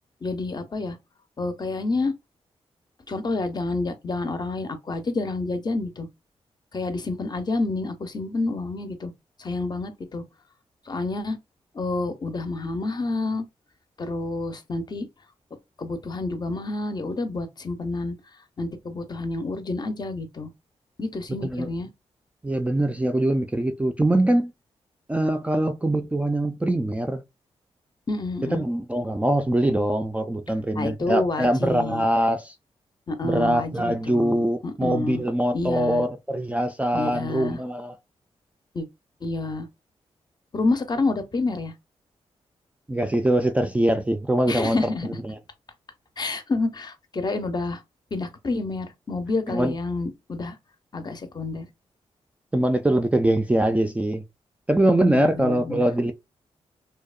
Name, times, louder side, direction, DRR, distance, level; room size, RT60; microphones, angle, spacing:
voice 1, 0.2-1.0 1.4-2.1 3.1-6.1 6.7-9.1 9.4-10.2 10.9-11.4 11.7-13.4 14.0-15.1 15.8-18.2 18.6-20.5 21.0-21.9 28.1-28.6 30.7-32.0 33.1-35.2 35.5-36.0 36.9-37.6 38.7-38.9 39.2-39.7 40.5-41.7 44.5-45.2 46.2-47.8 48.1-50.6 50.9-51.7 55.1-55.9, left 3 dB, 40° left, 0.6 m, -28 dB
voice 2, 22.4-24.5 25.1-27.2 28.5-32.5 33.2-37.9 42.9-44.8 45.2-45.4 49.5-49.7 52.5-54.2 54.7-56.1, right 1 dB, 10° right, 0.3 m, -23 dB
2.7 x 2.1 x 2.3 m
cardioid pair, 95°, 11 cm